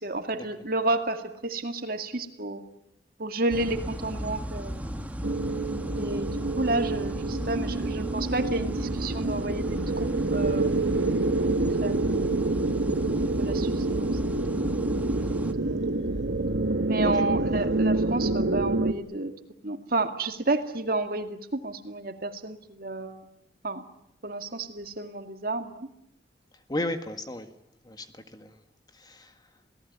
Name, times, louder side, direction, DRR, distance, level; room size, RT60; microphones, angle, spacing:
voice 1, 0.0-2.6 3.2-5.1 5.9-11.0 11.4-12.5 13.4-14.8 15.3-15.8 16.9-19.3 19.6-23.3 23.6-23.8 24.2-25.9, right 2 dB, 55° right, 7 dB, 2.2 m, -31 dB
sound 1, 3.5-15.5, equal, 10° right, 1.4 m, -35 dB
sound 2, 5.2-18.9, right 2 dB, 85° right, 1.2 m, -27 dB
voice 2, 26.7-27.5 27.8-28.6 28.9-29.5, left 1 dB, 25° left, 8 dB, 1.7 m, -34 dB
28.5 x 18.0 x 9.6 m, 0.81 s
head